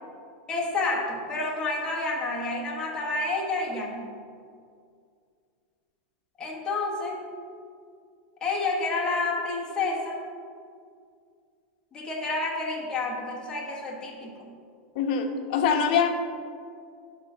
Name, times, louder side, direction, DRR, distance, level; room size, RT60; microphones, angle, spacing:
voice 1, 0.5-4.1 6.4-7.2 8.4-10.2 11.9-14.3, left 3 dB, 15° left, -3 dB, 1.2 m, -29 dB
voice 2, 14.9-16.1, left 7 dB, 55° left, 5 dB, 0.9 m, -24 dB
12.5 x 4.4 x 3.9 m, 2.2 s
supercardioid pair, 155°, 6 cm